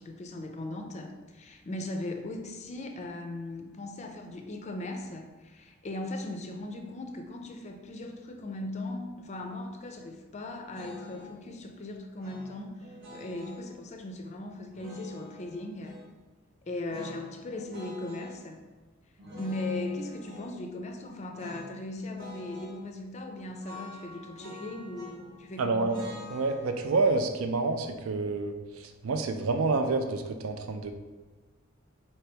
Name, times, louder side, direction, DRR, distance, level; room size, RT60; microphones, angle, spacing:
voice 1, 0.0-12.7 13.1-16.0 16.7-18.6 19.3-26.0, left 2 dB, 35° left, 4 dB, 0.4 m, -38 dB
sound 1, 10.7-11.4 12.2-13.7 14.7-16.1 16.9-18.4 19.2-20.5 21.3-21.7 22.0-22.8 23.6-25.4 25.9-28.9, left 1 dB, 60° right, 1.0 m, -47 dB
voice 2, 25.6-26.0 26.3-30.9, right 3 dB, 80° right, 6 dB, 0.4 m, -28 dB
4.4 x 2.9 x 3.3 m, 1.3 s
head